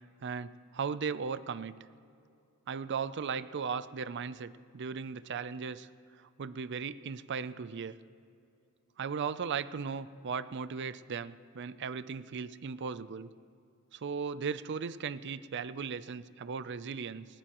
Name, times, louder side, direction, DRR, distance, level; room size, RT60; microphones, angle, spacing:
voice 1, 0.2-1.7 2.7-5.9 6.2-7.9 9.0-13.3 13.9-17.3, right 6 dB, 55° right, 14 dB, 0.5 m, -37 dB
19.5 x 19.5 x 3.0 m, 2.5 s
head